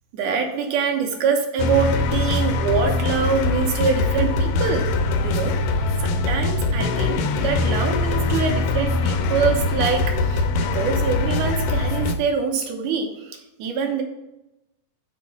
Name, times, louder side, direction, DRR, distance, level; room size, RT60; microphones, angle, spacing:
voice 1, 0.1-4.9 5.2-5.6 6.0-14.0, right 5 dB, 70° right, 2 dB, 2.4 m, -24 dB
sound 1, 1.6-12.2, left 3 dB, 80° left, 2.2 m, -22 dB
7.4 x 3.7 x 5.9 m, 0.94 s
omnidirectional pair, 3.9 m